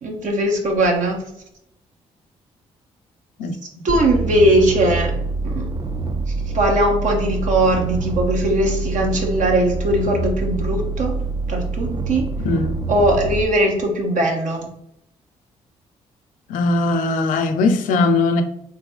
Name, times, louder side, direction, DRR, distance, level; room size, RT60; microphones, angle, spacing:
voice 1, 0.0-1.2 3.8-5.1 5.4-5.7 6.5-11.1 11.5-12.3 12.9-14.7, right 1 dB, 65° right, 1.1 m, -19 dB
sound 1, 3.9-13.4, right 3 dB, 35° right, 0.4 m, -25 dB
voice 2, 12.4-12.8 16.5-18.4, left 3 dB, 80° left, 0.5 m, -19 dB
3.7 x 2.9 x 3.8 m
supercardioid pair, 60°, 14 cm